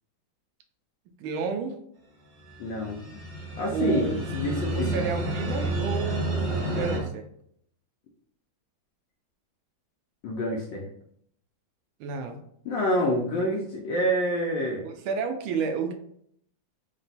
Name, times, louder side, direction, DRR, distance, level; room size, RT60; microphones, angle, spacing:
voice 1, 1.2-1.8 3.7-4.3 4.7-7.2 12.0-12.4 14.8-15.9, right 6 dB, 85° right, 6 dB, 1.4 m, -30 dB
sound 1, 2.5-7.0, right 2 dB, 65° right, 1.5 m, -30 dB
voice 2, 2.6-3.0 3.6-5.1 10.2-10.8 12.6-14.8, left 1 dB, 75° left, -1 dB, 1.3 m, -27 dB
4.0 x 2.2 x 3.9 m, 0.69 s
omnidirectional pair, 2.2 m